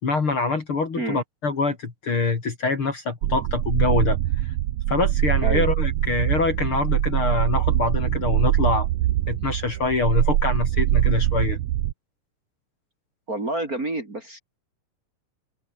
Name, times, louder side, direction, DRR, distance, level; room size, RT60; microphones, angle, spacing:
voice 1, 0.0-4.2 4.4-4.5 4.9-8.9 9.3-11.6, left 4 dB, 40° left, 3.3 m, -25 dB
Mothership Hum, 3.2-11.9, right 14 dB, 75° right, 1.5 m, -23 dB
voice 2, 13.3-14.4, right 2 dB, 25° right, 3.6 m, -28 dB
open air
omnidirectional pair, 4.0 m